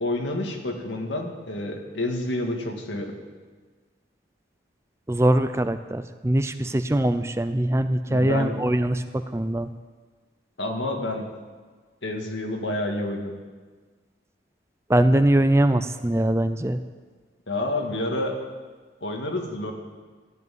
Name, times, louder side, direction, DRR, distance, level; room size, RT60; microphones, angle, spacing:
voice 1, 0.0-3.1 8.1-8.6 10.6-11.3 12.0-13.3 17.5-18.4 19.0-19.7, left 1 dB, 90° left, 2 dB, 2.0 m, -29 dB
voice 2, 5.1-9.7 14.9-16.8, right 1 dB, 15° right, 10 dB, 0.5 m, -22 dB
13.5 x 8.1 x 9.3 m, 1.4 s
head